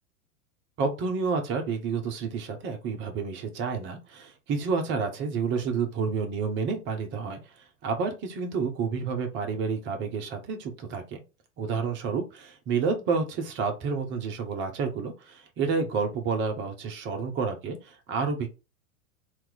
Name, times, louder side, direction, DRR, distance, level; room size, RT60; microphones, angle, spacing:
voice 1, 0.8-11.2 11.6-18.5, right 5 dB, 25° right, 5 dB, 0.8 m, -30 dB
2.9 x 2.5 x 3.8 m, 0.29 s
figure-of-eight pair, 95°, 44 cm